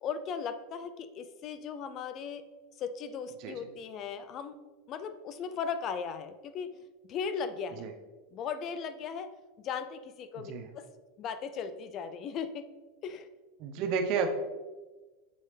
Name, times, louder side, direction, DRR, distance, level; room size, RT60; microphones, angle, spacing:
voice 1, 0.0-2.4 2.8-4.6 4.9-6.8 7.1-7.9 8.3-9.3 9.6-10.9 11.2-12.7 13.0-13.3, left 6 dB, 40° left, 11 dB, 0.4 m, -37 dB
voice 2, 10.4-10.7 13.6-14.3, right 5 dB, 50° right, 5 dB, 0.7 m, -31 dB
7.7 x 4.0 x 3.3 m, 1.3 s
supercardioid pair, 125°, 0 cm